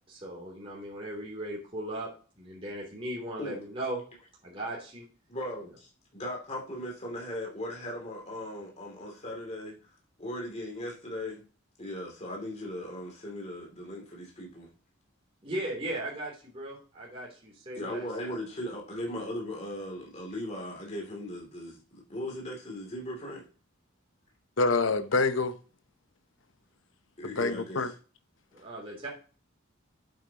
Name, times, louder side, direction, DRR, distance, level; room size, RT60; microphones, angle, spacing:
voice 1, 0.1-2.1 2.4-4.0 4.4-5.0 5.6-5.7 15.4-18.4 28.5-29.1, right 1 dB, 30° right, 3.1 m, -37 dB
voice 2, 5.3-9.7 10.2-11.4 11.8-14.7 17.7-23.5 27.2-28.0, left 1 dB, 35° left, 2.8 m, -38 dB
voice 3, 24.6-25.6 27.2-27.9, left 3 dB, 70° left, 0.8 m, -26 dB
8.6 x 7.9 x 2.9 m
head